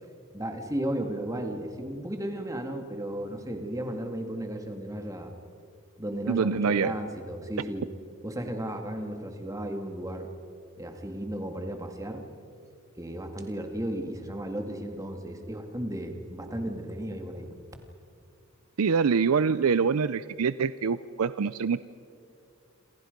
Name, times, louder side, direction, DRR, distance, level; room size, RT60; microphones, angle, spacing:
voice 1, 0.3-5.3 6.0-7.9 8.2-10.3 10.8-12.2 13.0-17.5, right 1 dB, 15° right, 4 dB, 2.0 m, -34 dB
voice 2, 6.3-6.9 18.8-21.8, right 5 dB, 80° right, 15 dB, 0.5 m, -25 dB
28.0 x 26.5 x 5.3 m, 2.4 s
head